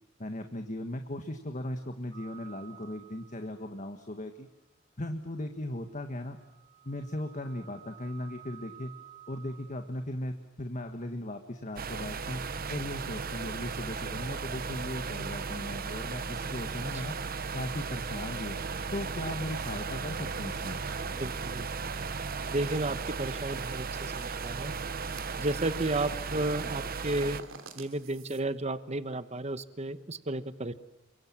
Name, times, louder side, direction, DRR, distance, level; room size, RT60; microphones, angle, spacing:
voice 1, 0.2-4.5 5.0-6.4 6.8-8.9 9.3-12.4 12.7-17.1 17.5-18.6 18.9-20.8, left 1 dB, 40° left, 6 dB, 1.7 m, -37 dB
sound 1, 2.1-3.7 5.8-10.1 16.0-16.8, right 12 dB, 25° left, 3.5 m, -54 dB
sound 2, 11.8-27.4, right 4 dB, 50° right, 1.0 m, -36 dB
sound 3, 19.5-28.4, right 5 dB, 75° right, 3.1 m, -53 dB
voice 2, 21.1-21.7 22.5-24.7 25.4-27.4 27.7-30.7, right 2 dB, 35° right, 12 dB, 1.2 m, -33 dB
28.5 x 24.5 x 7.6 m, 0.94 s
head